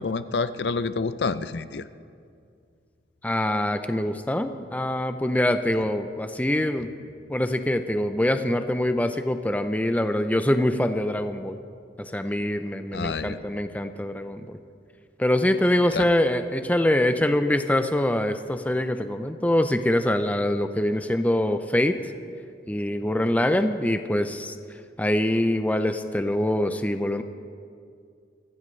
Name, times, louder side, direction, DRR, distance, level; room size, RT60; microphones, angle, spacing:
voice 1, 0.0-1.9 12.9-13.4 15.9-16.1, left 4 dB, 65° left, 13 dB, 0.5 m, -28 dB
voice 2, 3.2-6.9 7.3-11.6 12.0-14.6 15.2-22.0 22.7-24.6 25.0-27.2, left 1 dB, 10° left, 8 dB, 0.5 m, -24 dB
24.5 x 15.0 x 3.2 m, 2.3 s
head